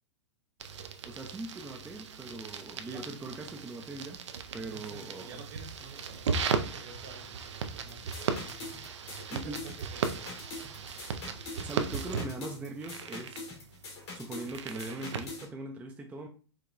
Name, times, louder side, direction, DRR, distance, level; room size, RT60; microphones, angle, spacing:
sound 1, 0.6-15.3, right 5 dB, 85° right, 0.5 m, -37 dB
voice 1, 1.0-4.2 4.5-5.4 9.3-9.6 11.6-13.4 14.1-16.3, right 2 dB, 10° right, 0.3 m, -41 dB
voice 2, 4.7-8.7 9.1-10.5, right 3 dB, 55° right, 0.9 m, -50 dB
sound 2, 7.9-15.5, left 3 dB, 65° left, 1.4 m, -44 dB
4.7 x 2.2 x 2.4 m
hypercardioid pair, 120°, 15 cm